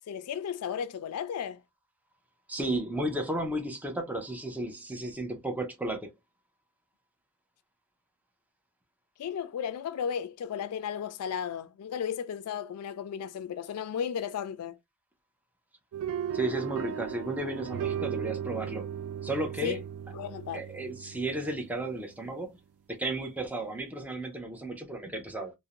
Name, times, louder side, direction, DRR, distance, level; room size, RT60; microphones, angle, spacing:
voice 1, 0.1-1.6 9.2-14.8 19.6-19.8 20.1-20.6, left 8 dB, 80° left, 0.3 m, -34 dB
voice 2, 2.5-6.1 16.3-18.9 19.2-19.8 20.5-22.6 22.9-25.5, right 1 dB, 5° right, 0.5 m, -34 dB
sound 1, 15.9-22.2, right 8 dB, 70° right, 0.3 m, -36 dB
2.5 x 2.1 x 2.7 m
head